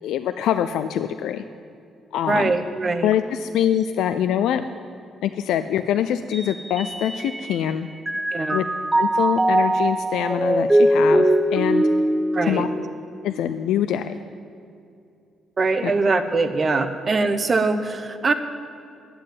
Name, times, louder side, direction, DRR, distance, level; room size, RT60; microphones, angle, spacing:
voice 1, 0.0-1.4 2.1-2.5 3.0-4.6 5.2-7.9 8.5-8.7 9.0-11.9 12.4-12.7 13.2-14.1 15.8-15.9, left 10 dB, 85° left, 9 dB, 0.4 m, -24 dB
voice 2, 2.3-3.1 8.3-8.6 12.3-12.7 15.6-18.3, right 3 dB, 40° right, 8 dB, 0.9 m, -22 dB
Mallet percussion, 6.3-7.7 8.1-13.5, right 1 dB, 10° right, 0.4 m, -21 dB
9.5 x 7.6 x 9.1 m, 2.5 s
cardioid pair, 90°, 0 cm